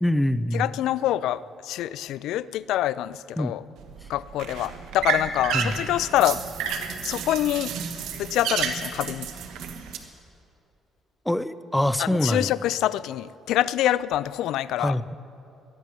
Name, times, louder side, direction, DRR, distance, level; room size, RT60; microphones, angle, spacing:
voice 1, 0.0-0.7 3.4-3.5 5.5-5.8 11.3-12.5 14.8-15.1, left 1 dB, 5° left, 14 dB, 0.4 m, -24 dB
voice 2, 0.5-3.6 4.1-6.4 7.0-7.7 8.2-9.3 12.0-15.0, left 13 dB, 85° left, 17 dB, 0.3 m, -26 dB
sound 1, 3.8-10.0, right 7 dB, 90° right, 1.3 m, -31 dB
19.5 x 12.0 x 6.0 m, 2.7 s
cardioid pair, 135°, 0 cm